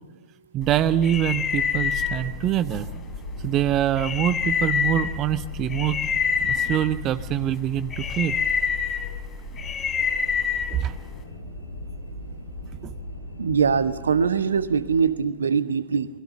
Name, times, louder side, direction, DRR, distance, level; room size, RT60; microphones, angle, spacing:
voice 1, 0.5-2.9 3.4-6.0 6.4-8.4 10.7-10.9 12.8-13.0, right 11 dB, 35° right, 14 dB, 0.8 m, -24 dB
sound 1, 0.6-11.2, left 6 dB, 25° left, 4.6 m, -28 dB
sound 2, 1.1-15.1, left 1 dB, 80° left, 5.9 m, -38 dB
voice 2, 13.4-16.1, right 6 dB, 70° right, 12 dB, 1.2 m, -22 dB
29.0 x 22.0 x 6.9 m, 1.0 s
figure-of-eight pair, 90°, 0 cm